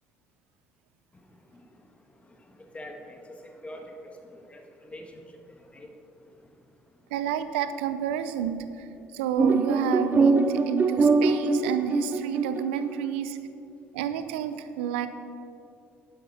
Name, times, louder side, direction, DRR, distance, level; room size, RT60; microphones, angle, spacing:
voice 1, 2.7-5.2 5.7-5.9, left 1 dB, 20° left, 3 dB, 1.5 m, -44 dB
voice 2, 7.1-8.9 9.1-13.4 13.9-15.1, right 9 dB, 85° right, 11 dB, 0.6 m, -30 dB
sound 1, 9.4-13.0, right 4 dB, 30° right, 0.7 m, -23 dB
11.0 x 10.5 x 4.3 m, 2.6 s
hypercardioid pair, 60°, 6 cm